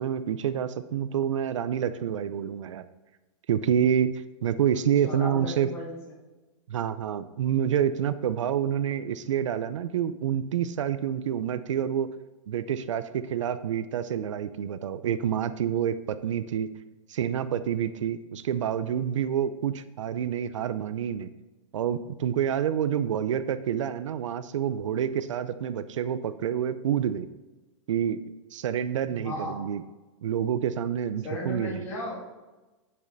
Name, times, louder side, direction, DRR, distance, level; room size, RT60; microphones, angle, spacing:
voice 1, 0.0-2.8 3.5-4.1 4.4-5.7 6.7-12.1 12.5-16.7 17.1-21.3 21.7-27.3 27.9-28.2 28.5-29.8 30.2-31.8, right 9 dB, 70° right, 12 dB, 0.6 m, -28 dB
voice 2, 5.0-6.0 29.1-29.6 31.2-32.2, left 1 dB, 15° left, -3 dB, 2.6 m, -35 dB
9.0 x 8.5 x 4.1 m, 1.1 s
supercardioid pair, 170°, 16 cm